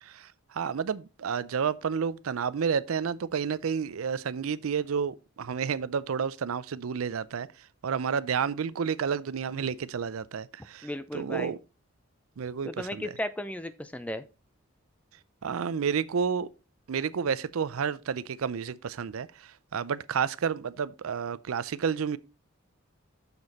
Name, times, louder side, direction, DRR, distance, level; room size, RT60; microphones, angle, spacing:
voice 1, 0.0-7.5 7.8-10.9 11.1-11.6 12.4-13.1 15.4-16.5 16.9-22.2, right 6 dB, 90° right, 0.5 m, -30 dB
voice 2, 10.8-11.5 12.6-14.2, left 1 dB, 5° left, 0.4 m, -35 dB
6.9 x 6.4 x 4.1 m
head